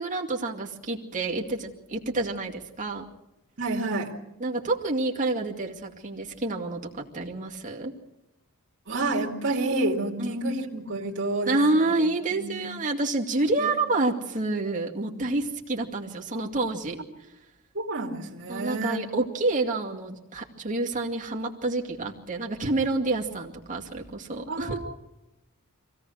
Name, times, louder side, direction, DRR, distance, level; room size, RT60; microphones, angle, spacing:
voice 1, 0.0-3.0 4.4-7.9 10.2-10.4 11.4-17.0 18.5-24.8, right 2 dB, 35° right, -1 dB, 2.3 m, -28 dB
voice 2, 3.6-4.1 8.9-11.9 12.3-12.7 13.6-13.7 17.7-19.1 24.5-24.8, right 2 dB, 55° right, -4 dB, 2.7 m, -29 dB
25.0 x 17.0 x 6.4 m, 0.93 s
head